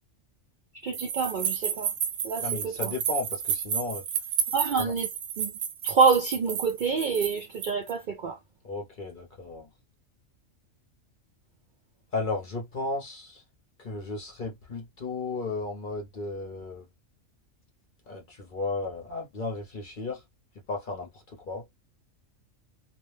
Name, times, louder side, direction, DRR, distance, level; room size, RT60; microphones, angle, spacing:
voice 1, 0.8-1.9 2.2-2.9 4.5-5.1 5.4-5.5 5.8-8.4, right 5 dB, 60° right, 0.5 m, -26 dB
sound 1, 0.9-7.9, right 8 dB, 80° right, 1.0 m, -31 dB
voice 2, 2.4-4.0 4.8-4.9 8.6-9.7 12.1-13.4 13.8-16.9 18.1-20.2 20.7-21.7, left 3 dB, 45° left, 0.7 m, -34 dB
2.4 x 2.1 x 3.2 m
omnidirectional pair, 1.3 m